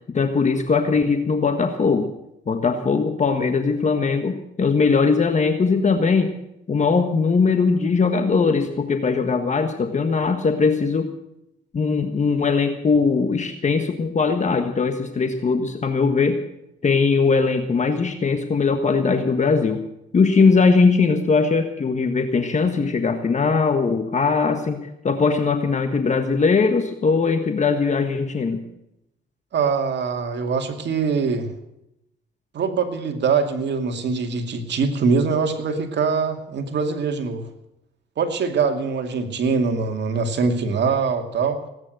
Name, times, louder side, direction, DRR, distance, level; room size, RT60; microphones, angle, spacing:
voice 1, 0.1-2.1 2.5-6.3 6.7-11.1 11.7-16.4 16.8-19.8 20.1-28.6, left 4 dB, 35° left, 7 dB, 1.5 m, -20 dB
voice 2, 29.5-31.5 32.5-37.5 38.2-41.6, right 5 dB, 60° right, 6 dB, 2.4 m, -23 dB
18.5 x 9.7 x 7.9 m, 0.83 s
cardioid pair, 90°, 20 cm